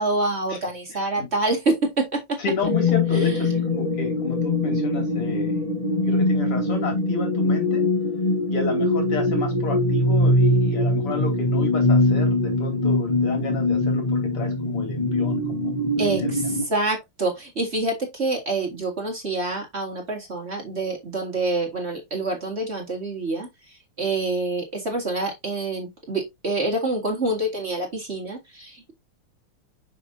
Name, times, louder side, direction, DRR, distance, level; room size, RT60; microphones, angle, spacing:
voice 1, 0.0-2.4 16.0-23.5 24.0-28.9, right 2 dB, 30° right, 1.9 m, -26 dB
voice 2, 0.9-1.3 2.4-5.7 6.0-7.8 8.5-16.7, left 4 dB, 85° left, 3.6 m, -31 dB
sound 1, 2.6-16.6, left 2 dB, 25° left, 0.9 m, -22 dB
6.3 x 5.8 x 2.7 m
omnidirectional pair, 2.4 m